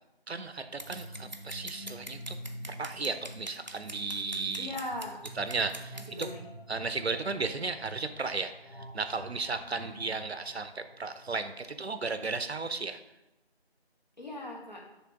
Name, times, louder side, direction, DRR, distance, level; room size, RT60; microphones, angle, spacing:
voice 1, 0.3-2.4 2.7-4.8 5.4-5.9 6.7-8.5 8.9-13.0, right 4 dB, 85° right, 10 dB, 0.6 m, -34 dB
sound 1, 0.6-12.5, equal, 60° left, 0.7 m, -48 dB
Scissors, 0.8-6.3, right 1 dB, 45° right, 0.5 m, -45 dB
voice 2, 4.6-5.2 5.9-6.5 9.7-9.9 14.2-14.9, left 1 dB, 45° left, -2 dB, 1.3 m, -40 dB
7.2 x 3.3 x 4.6 m, 0.95 s
figure-of-eight pair, 175°, 31 cm